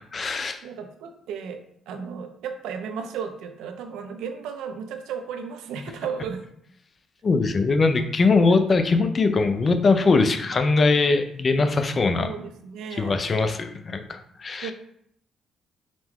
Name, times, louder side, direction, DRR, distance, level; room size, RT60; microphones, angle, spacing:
voice 1, 0.1-0.6 7.2-12.3 13.0-14.7, left 3 dB, 40° left, 8 dB, 0.5 m, -21 dB
voice 2, 0.6-6.4 8.5-8.6 12.2-13.2 14.6-14.7, right 6 dB, 90° right, 6 dB, 0.5 m, -34 dB
4.9 x 2.2 x 3.6 m, 0.70 s
cardioid pair, 90°, 0 cm